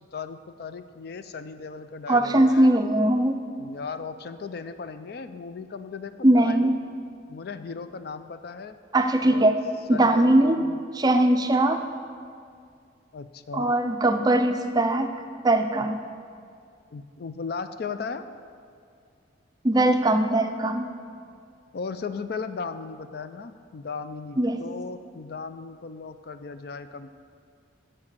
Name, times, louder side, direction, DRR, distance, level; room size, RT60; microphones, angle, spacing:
voice 1, 0.1-2.7 3.6-6.7 7.3-8.8 9.2-9.5 9.9-10.8 13.1-13.7 16.9-18.3 21.7-27.1, left 5 dB, 55° left, 11 dB, 0.4 m, -36 dB
voice 2, 2.1-3.4 6.2-6.7 8.9-9.6 9.9-10.6 10.9-11.8 13.5-15.1 15.4-16.0 19.6-20.9 24.4-24.6, right 1 dB, 20° right, 7 dB, 0.4 m, -20 dB
8.7 x 5.3 x 7.3 m, 2.3 s
head